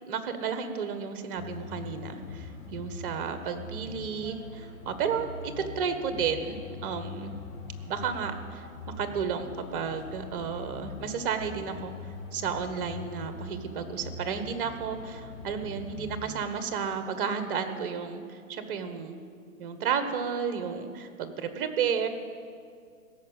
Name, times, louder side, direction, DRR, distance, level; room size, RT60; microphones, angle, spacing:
voice 1, 0.1-7.3 7.9-11.9 12.3-19.2 19.6-22.1, right 6 dB, 40° right, 9 dB, 1.4 m, -32 dB
sound 1, 1.4-16.4, left 3 dB, 75° left, 3.6 m, -42 dB
16.5 x 7.3 x 9.5 m, 2.2 s
hypercardioid pair, 150°, 43 cm